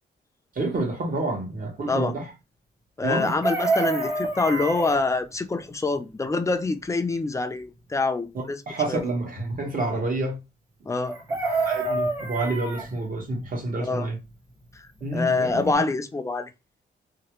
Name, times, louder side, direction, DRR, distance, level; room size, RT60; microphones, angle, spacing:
voice 1, 0.5-2.3 3.0-3.4 8.3-10.4 11.6-14.2 15.0-15.8, right 2 dB, 50° right, 1.4 m, -28 dB
voice 2, 3.0-8.6 8.9-9.1 10.8-11.2 13.8-14.1 14.7-14.9 15.1-16.5, left 3 dB, 15° left, 0.5 m, -26 dB
Chicken rooster, 3.2-5.0 11.1-12.9 15.1-15.2 15.5-15.7, right 3 dB, 20° right, 1.1 m, -27 dB
3.0 x 2.4 x 3.0 m
cardioid pair, 95°, 19 cm